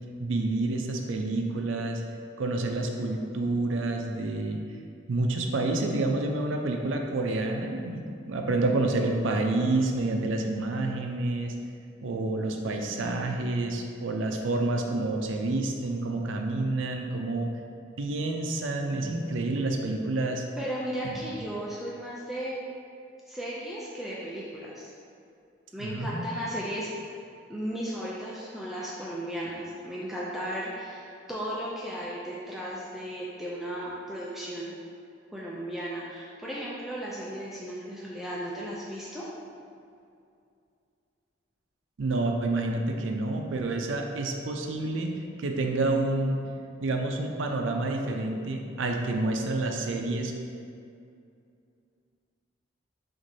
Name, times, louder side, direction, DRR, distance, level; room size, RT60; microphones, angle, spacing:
voice 1, 0.2-2.0 2.4-4.6 5.1-11.5 12.0-17.5 18.0-20.4 21.0-21.1 25.8-26.3 42.0-45.1 45.4-46.4 46.8-50.3, right 2 dB, 80° right, 3 dB, 0.4 m, -28 dB
voice 2, 20.6-22.6 23.3-24.9 25.7-26.9 27.5-34.7 35.3-39.3, equal, ahead, -6 dB, 0.3 m, -35 dB
6.0 x 2.5 x 2.7 m, 2.5 s
head